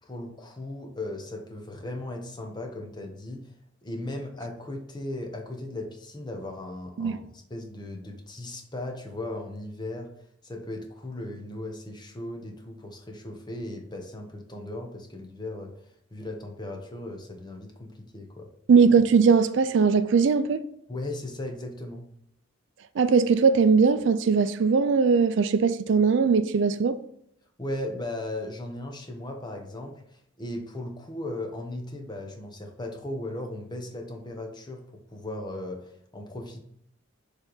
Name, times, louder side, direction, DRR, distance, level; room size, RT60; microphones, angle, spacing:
voice 1, 0.0-3.5 3.8-10.1 10.4-15.8 16.1-18.5 20.9-22.1 27.6-36.6, left 1 dB, 20° left, 0.9 m, -37 dB
voice 2, 18.7-20.6 23.0-27.0, right 5 dB, 60° right, 0.4 m, -20 dB
7.1 x 3.3 x 3.9 m
head